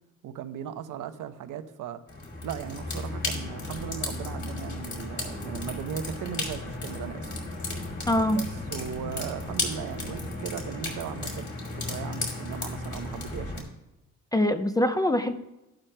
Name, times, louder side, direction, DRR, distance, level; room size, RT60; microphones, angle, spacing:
voice 1, 0.2-2.0 2.4-7.3 8.3-11.4 11.8-13.7, right 9 dB, 70° right, 9 dB, 0.8 m, -37 dB
sound 1, 2.1-13.6, left 2 dB, 35° left, 2.8 m, -34 dB
voice 2, 8.1-8.4 14.3-15.4, left 1 dB, 10° left, 9 dB, 0.3 m, -23 dB
13.5 x 11.5 x 2.2 m, 0.95 s
cardioid pair, 150°, 32 cm